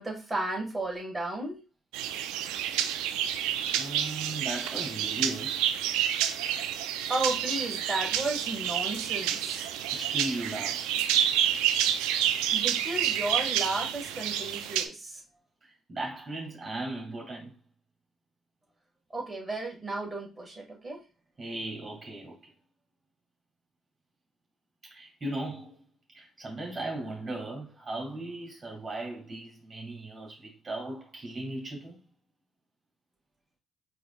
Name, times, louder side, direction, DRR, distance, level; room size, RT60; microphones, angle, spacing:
voice 1, 0.0-1.6 7.1-9.7 12.5-15.2 19.1-21.0, right 2 dB, 20° right, 1.9 m, -33 dB
sound 1, 1.9-14.8, right 10 dB, 90° right, 0.3 m, -29 dB
voice 2, 3.8-5.7 9.7-10.9 15.6-17.5 21.4-22.4 24.9-25.8 26.1-32.0, right 2 dB, 35° right, 2.5 m, -37 dB
4.8 x 3.1 x 2.5 m
supercardioid pair, 70°, 0 cm